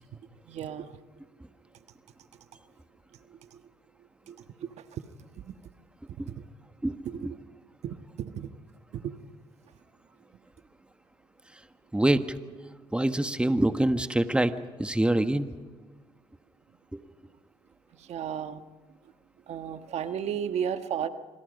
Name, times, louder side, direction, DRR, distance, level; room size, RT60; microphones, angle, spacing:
voice 1, 0.5-1.0 3.3-3.6 4.3-5.0 5.5-5.6 6.3-6.4 7.0-7.3 7.8-8.5 8.9-9.1 18.0-18.6 19.5-21.1, right 8 dB, 70° right, 9 dB, 1.4 m, -34 dB
voice 2, 6.8-7.3 11.5-11.6 11.9-12.4 12.9-15.5 16.9-17.0, right 1 dB, 10° right, 9 dB, 1.4 m, -26 dB
26.0 x 25.5 x 5.3 m, 1.4 s
supercardioid pair, 70°, 12 cm